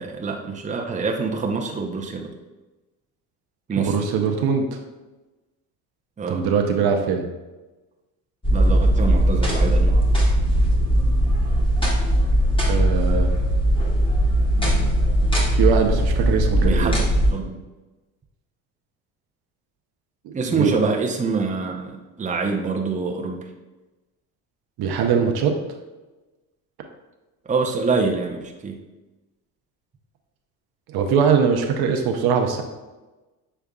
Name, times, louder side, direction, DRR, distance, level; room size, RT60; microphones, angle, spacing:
voice 1, 0.0-2.3 3.7-4.0 6.2-6.4 8.5-10.0 11.4-11.6 16.6-17.0 17.3-17.6 20.3-23.4 27.5-28.8, right 4 dB, 15° right, 1 dB, 0.7 m, -25 dB
voice 2, 3.8-4.6 6.3-7.3 12.7-13.3 15.5-17.0 20.2-20.7 24.8-25.5 30.9-32.6, right 6 dB, 55° right, 4 dB, 0.7 m, -21 dB
sound 1, 8.4-17.3, equal, 10° left, 1.4 m, -19 dB
6.7 x 3.5 x 2.3 m, 1.1 s
supercardioid pair, 75°, 45 cm